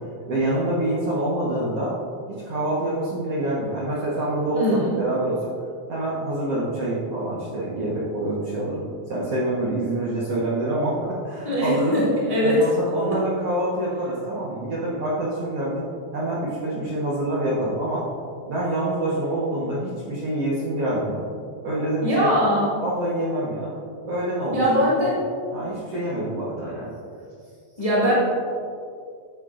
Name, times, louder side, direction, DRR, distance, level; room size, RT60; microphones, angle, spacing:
voice 1, 0.3-1.9 2.3-5.5 5.9-8.8 9.1-12.0 12.4-15.9 16.1-18.0 18.5-21.2 21.6-22.4 22.8-23.7 24.0-24.6 25.1-25.2 25.5-26.9, right 1 dB, 75° right, -7 dB, 1.3 m, -26 dB
voice 2, 4.5-5.0 11.4-12.7 22.0-22.7 24.5-25.2 27.8-28.1, equal, 15° left, -7 dB, 1.3 m, -21 dB
12.5 x 9.1 x 2.6 m, 2.3 s
omnidirectional pair, 4.8 m